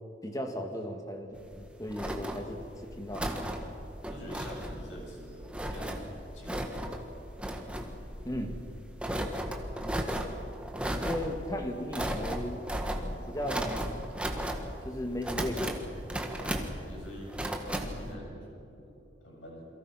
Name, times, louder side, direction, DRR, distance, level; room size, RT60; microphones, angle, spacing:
voice 1, 0.2-3.2 8.2-8.6 11.0-12.6 13.0-14.0 14.8-15.8, equal, 20° left, 4 dB, 2.1 m, -36 dB
sound 1, 1.4-18.1, right 1 dB, 5° right, 1.6 m, -36 dB
voice 2, 4.1-6.7 16.4-16.6 16.8-18.5 18.8-19.7, equal, 80° left, -2 dB, 7.7 m, -46 dB
28.5 x 23.0 x 5.9 m, 2.9 s
head